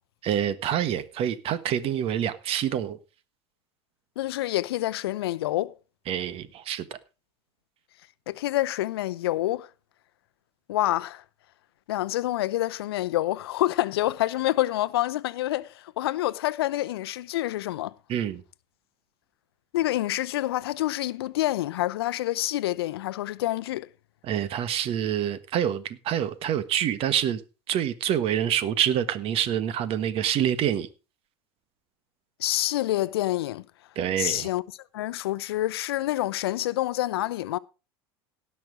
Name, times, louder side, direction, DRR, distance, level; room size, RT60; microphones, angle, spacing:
voice 1, 0.2-3.0 6.1-7.0 18.1-18.4 24.2-27.4 27.7-30.9 33.9-34.5, right 10 dB, 50° right, 1.4 m, -26 dB
voice 2, 4.2-5.7 8.3-9.7 10.7-11.2 11.9-17.9 19.7-23.9 32.4-33.6 34.2-34.6 34.9-37.6, left 15 dB, 80° left, 0.6 m, -27 dB
17.5 x 6.1 x 4.9 m
hypercardioid pair, 90°, 13 cm